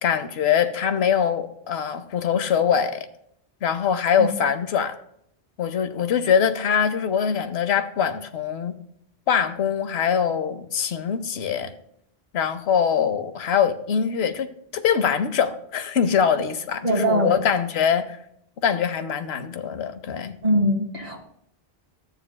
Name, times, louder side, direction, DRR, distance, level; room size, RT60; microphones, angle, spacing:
voice 1, 0.0-3.1 3.6-5.0 5.6-8.7 9.3-11.7 12.3-18.2 18.6-20.4, left 7 dB, 80° left, 10 dB, 1.0 m, -23 dB
voice 2, 16.8-17.4 20.4-21.2, equal, 40° right, 1 dB, 1.8 m, -22 dB
14.0 x 7.1 x 2.2 m, 0.73 s
omnidirectional pair, 1.1 m